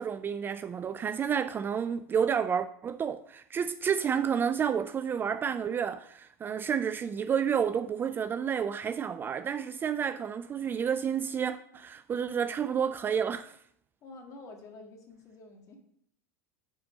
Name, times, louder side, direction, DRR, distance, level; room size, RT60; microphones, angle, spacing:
voice 1, 0.0-13.6, right 7 dB, 25° right, 0.3 m, -30 dB
voice 2, 14.0-15.8, left 3 dB, 40° left, 1.8 m, -48 dB
9.2 x 4.3 x 5.0 m
hypercardioid pair, 85°, 9 cm